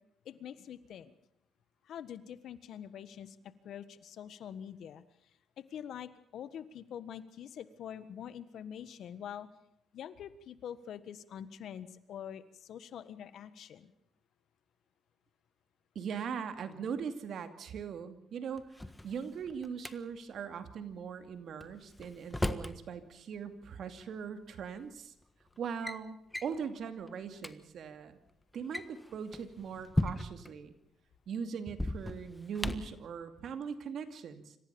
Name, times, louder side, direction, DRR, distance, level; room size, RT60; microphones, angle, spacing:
voice 1, 0.2-1.1 1.9-3.4 3.6-5.0 5.6-9.5 9.9-13.9, left 9 dB, 75° left, 14 dB, 1.5 m, -45 dB
voice 2, 15.9-18.6 19.0-25.1 25.6-28.2 28.5-30.7 31.3-34.6, right 6 dB, 65° right, 9 dB, 2.5 m, -40 dB
Drawer open or close, 18.6-19.9 21.6-22.8 24.1-24.2 25.0-25.2 25.6-26.0 26.3-26.6 27.1-27.2 27.4-27.5 28.5-30.5 31.7-33.0, left 1 dB, 10° left, 1.4 m, -36 dB
27.0 x 15.0 x 7.1 m, 0.75 s
cardioid pair, 90°, 0 cm